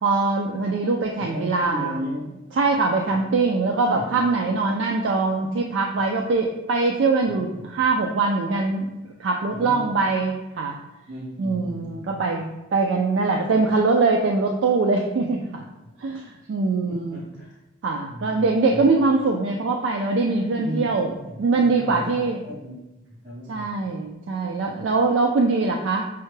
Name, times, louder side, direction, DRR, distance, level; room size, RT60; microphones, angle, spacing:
voice 1, 0.0-2.0 2.5-10.8 11.4-15.6 16.0-17.2 17.8-21.1 21.4-22.4 23.5-26.1, right 3 dB, 65° right, 1 dB, 0.3 m, -22 dB
voice 2, 1.2-2.2 3.1-3.2 3.9-4.2 7.3-7.7 9.5-9.9 11.1-12.1 16.4-16.5 16.9-17.6 18.0-18.9 20.6-20.9 21.1-22.2 22.4-22.8 23.1-23.7, equal, 45° right, -11 dB, 1.2 m, -35 dB
5.5 x 2.1 x 3.1 m, 1.0 s
head